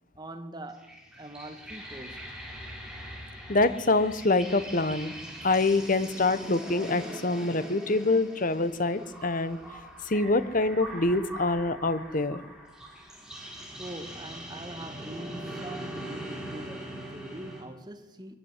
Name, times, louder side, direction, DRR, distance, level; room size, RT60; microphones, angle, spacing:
voice 1, 0.2-2.3 13.8-18.3, right 1 dB, 20° right, 1.7 m, -43 dB
sound 1, 0.7-17.6, right 1 dB, 5° right, 4.3 m, -42 dB
voice 2, 3.5-5.1 5.4-9.6 10.0-12.4, left 2 dB, 40° left, 1.1 m, -25 dB
22.5 x 15.0 x 9.7 m
head